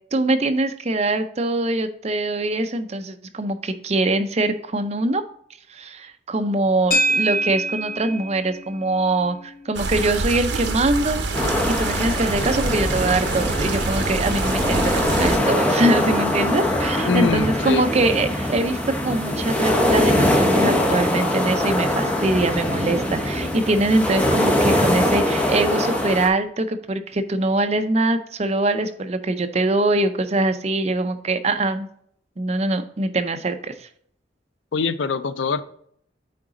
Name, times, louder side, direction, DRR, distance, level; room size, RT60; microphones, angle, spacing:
voice 1, 0.1-5.2 5.7-11.3 11.7-31.9 32.4-33.9, right 2 dB, 35° right, 9 dB, 0.5 m, -23 dB
sound 1, 6.9-15.3, right 1 dB, 50° left, 0.9 m, -30 dB
sound 2, 9.8-15.4, right 3 dB, 65° right, 0.8 m, -26 dB
sound 3, 11.3-26.3, left 1 dB, 10° left, 0.9 m, -22 dB
voice 2, 17.1-17.9 34.7-35.6, left 5 dB, 70° left, 14 dB, 0.4 m, -23 dB
8.6 x 3.9 x 3.8 m, 0.66 s
head